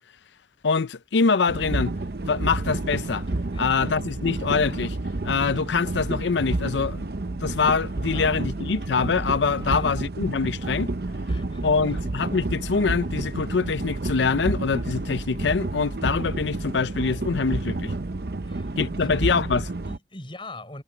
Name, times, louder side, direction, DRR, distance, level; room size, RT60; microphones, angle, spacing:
voice 1, 0.6-1.9 2.3-3.2 3.6-5.0 5.2-7.0 7.4-10.9 11.6-17.9 18.8-19.7, left 5 dB, 80° left, 0.6 m, -24 dB
sound 1, 1.5-20.0, right 2 dB, 55° right, 0.8 m, -30 dB
voice 2, 11.3-12.0 18.4-18.7 19.0-19.3 19.8-20.8, left 2 dB, 30° left, 6.3 m, -42 dB
head